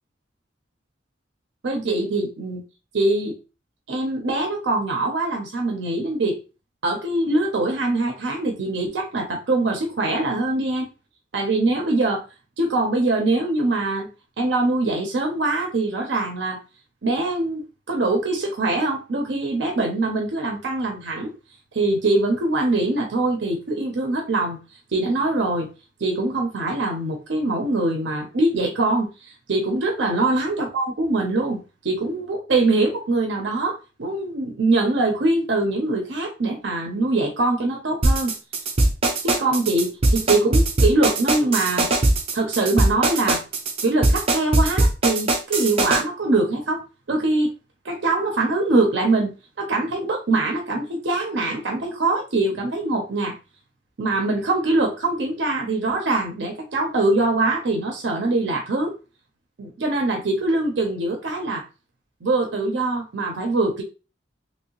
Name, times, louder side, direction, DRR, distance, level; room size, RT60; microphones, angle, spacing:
voice 1, 1.6-2.6 2.9-3.4 3.9-6.4 6.8-10.9 11.3-12.2 12.6-14.1 14.4-16.6 17.0-21.3 21.7-24.6 24.9-25.7 26.0-38.3 39.2-41.9 42.3-43.4 43.8-47.5 47.8-49.3 49.6-53.4 54.0-58.9 59.6-61.6 62.2-63.8, right 2 dB, 75° right, 2 dB, 0.6 m, -23 dB
sound 1, 38.0-46.0, right 2 dB, 30° right, 0.5 m, -20 dB
3.0 x 2.7 x 2.9 m, 0.31 s
head